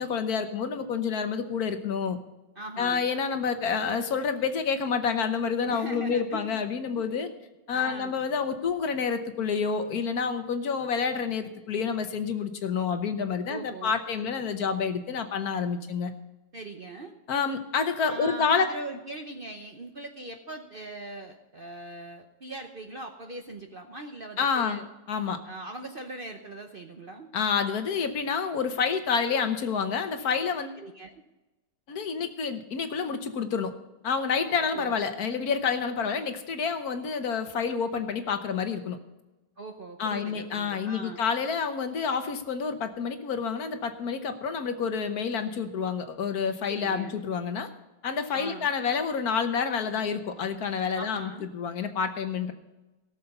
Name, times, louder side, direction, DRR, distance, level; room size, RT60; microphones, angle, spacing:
voice 1, 0.0-2.2 2.8-7.3 7.7-16.1 17.3-18.7 24.4-24.8 25.1-25.4 27.3-30.8 31.9-33.7 34.0-39.0 40.0-47.7 48.0-52.5, left 6 dB, 65° left, 8 dB, 1.4 m, -28 dB
voice 2, 2.6-3.1 5.6-6.6 7.0-7.1 7.7-8.2 13.4-14.0 16.5-17.1 18.0-24.9 25.4-27.3 30.2-30.3 30.8-31.2 34.5-35.0 39.6-41.2 46.7-47.2 48.3-48.7 50.9-51.5, right 2 dB, 45° right, 4 dB, 0.8 m, -40 dB
17.5 x 7.0 x 5.4 m, 1.0 s
omnidirectional pair, 1.8 m